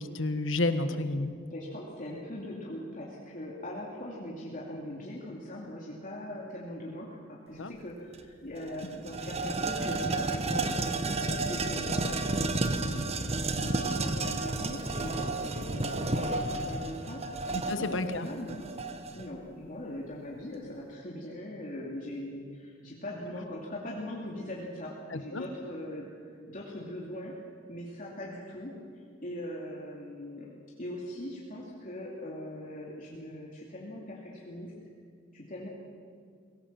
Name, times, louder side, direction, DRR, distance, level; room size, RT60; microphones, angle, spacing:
voice 1, 0.0-1.3 7.6-7.7 17.7-18.3 25.1-25.4, left 2 dB, 85° left, 10 dB, 1.3 m, -30 dB
voice 2, 1.4-7.1 7.5-18.6 19.1-26.1 26.5-27.3 27.7-28.7 29.2-30.5 30.8-34.7 35.3-35.7, left 1 dB, 45° left, -4 dB, 2.8 m, -41 dB
sound 1, 8.1-8.2 8.6-19.3, right 2 dB, 35° right, 1.1 m, -31 dB
23.0 x 17.0 x 7.5 m, 2.1 s
head